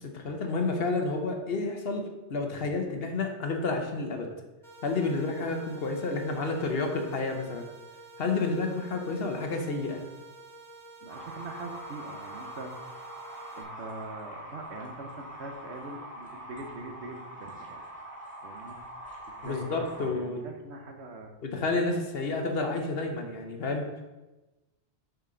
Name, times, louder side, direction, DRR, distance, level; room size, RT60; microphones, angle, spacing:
voice 1, 0.0-2.0 2.3-4.3 4.8-7.6 8.2-10.0 19.4-20.4 21.4-23.8, left 3 dB, 60° left, 4 dB, 1.1 m, -30 dB
sound 1, 4.6-13.6, right 2 dB, 40° right, 1.7 m, -50 dB
voice 2, 11.0-12.7 13.6-17.8 18.4-18.8 19.3-21.3, right 2 dB, 75° right, 4 dB, 1.2 m, -42 dB
sound 2, 11.1-20.0, right 1 dB, 5° left, 1.6 m, -43 dB
6.6 x 6.2 x 3.9 m, 1.1 s
omnidirectional pair, 1.2 m